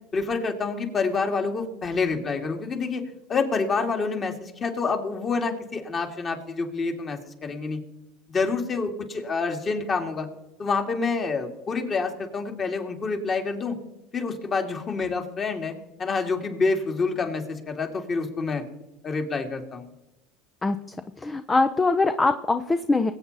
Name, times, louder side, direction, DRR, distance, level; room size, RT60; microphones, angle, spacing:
voice 1, 0.1-3.0 3.3-7.8 8.3-10.3 10.6-13.8 14.1-18.6 19.0-19.9, left 4 dB, 30° left, 4 dB, 2.5 m, -27 dB
voice 2, 21.2-23.1, left 3 dB, 15° left, 9 dB, 0.7 m, -22 dB
22.5 x 8.5 x 4.2 m, 0.97 s
supercardioid pair, 110°, 0 cm